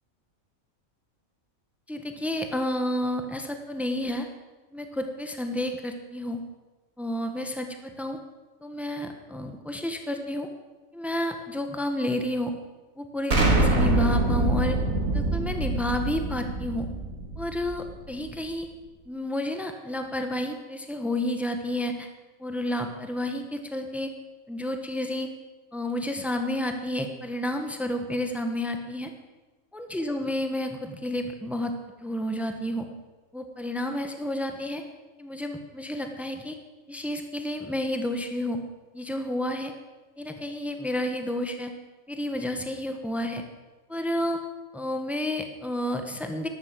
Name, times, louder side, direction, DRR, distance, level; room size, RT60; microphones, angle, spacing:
voice 1, 1.9-4.3 4.7-6.4 7.0-8.2 8.6-10.5 10.9-12.6 13.0-14.8 15.1-16.9 17.4-18.7 19.1-22.1 22.4-24.1 24.5-25.3 25.7-29.1 29.7-31.7 32.0-32.9 33.3-34.8 35.2-36.5 36.9-38.6 38.9-39.7 40.2-41.7 42.1-43.4 43.9-44.4 44.7-46.5, left 1 dB, ahead, 5 dB, 1.3 m, -30 dB
Explosion, 13.3-18.1, right 2 dB, 80° right, 2.7 m, -25 dB
12.5 x 12.5 x 7.8 m, 1.2 s
omnidirectional pair, 1.4 m